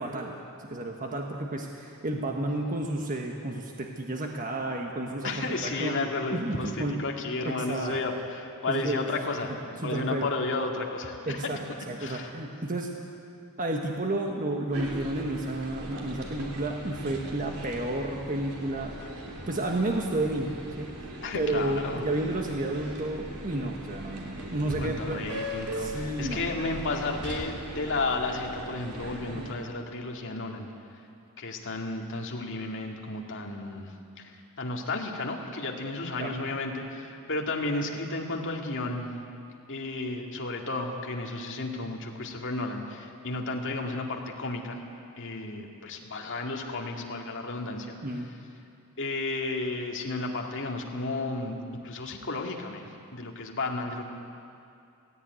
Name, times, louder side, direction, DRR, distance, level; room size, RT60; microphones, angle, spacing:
voice 1, 0.0-5.3 5.6-5.9 6.3-7.0 7.4-7.9 8.7-9.1 9.5-10.3 11.3-11.6 11.9-12.9 13.6-18.9 19.5-21.1 21.3-25.3 25.8-26.5 29.3-29.5 36.2-36.3 48.0-48.3, right 1 dB, 40° right, 1 dB, 1.4 m, -31 dB
voice 2, 5.2-11.5 12.0-12.3 21.2-22.0 24.6-30.7 31.4-39.1 39.7-44.8 45.2-48.0 49.0-51.6 51.8-54.0, left 3 dB, 60° left, 1 dB, 2.2 m, -33 dB
sound 1, 14.7-29.5, right 1 dB, 80° right, 2.9 m, -39 dB
17.0 x 16.5 x 9.4 m, 2.5 s
head